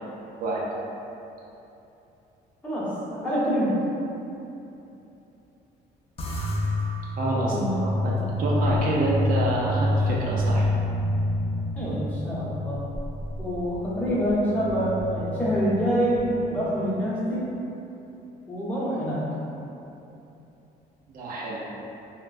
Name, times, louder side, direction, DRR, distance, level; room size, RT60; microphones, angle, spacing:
voice 1, 2.6-3.8 7.5-7.8 11.7-12.8 13.4-17.5 18.5-19.2, equal, 10° left, -10 dB, 0.9 m, -26 dB
sound 1, 6.2-16.8, left 1 dB, 35° left, 0.4 m, -28 dB
voice 2, 7.2-10.7 21.1-21.6, right 1 dB, 55° right, -5 dB, 0.5 m, -27 dB
3.1 x 2.1 x 2.4 m, 2.9 s
cardioid pair, 110°, 17 cm